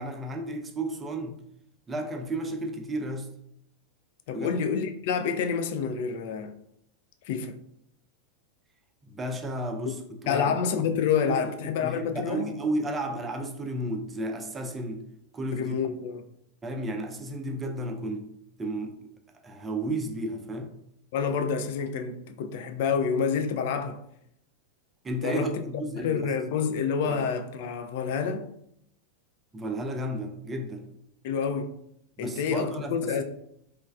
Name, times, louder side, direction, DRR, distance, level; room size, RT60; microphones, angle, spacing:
voice 1, 0.0-1.4 1.9-3.3 4.3-4.6 9.1-10.0 10.2-10.6 11.3-15.0 15.3-15.8 16.6-18.3 18.6-19.0 19.4-20.7 25.0-26.3 26.7-27.2 29.5-30.9 32.2-33.2, right 1 dB, 15° right, 0.4 m, -33 dB
voice 2, 4.3-6.5 7.2-7.5 10.3-12.5 15.5-16.3 21.1-24.0 25.2-28.5 31.2-31.7 32.2-33.2, left 6 dB, 50° left, 0.3 m, -28 dB
3.1 x 3.0 x 2.4 m
figure-of-eight pair, 90°, 0 cm